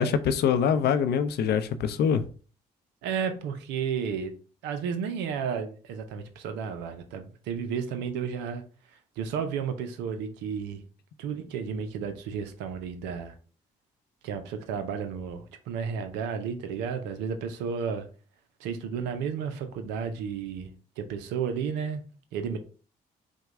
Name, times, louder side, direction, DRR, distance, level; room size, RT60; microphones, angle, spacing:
voice 1, 0.0-2.2, left 7 dB, 70° left, 0.5 m, -24 dB
voice 2, 3.0-4.3 4.6-10.8 11.2-13.3 14.2-18.1 18.6-22.0 22.3-22.6, right 6 dB, 80° right, 0.5 m, -32 dB
4.8 x 2.2 x 3.5 m
hypercardioid pair, 45°, 18 cm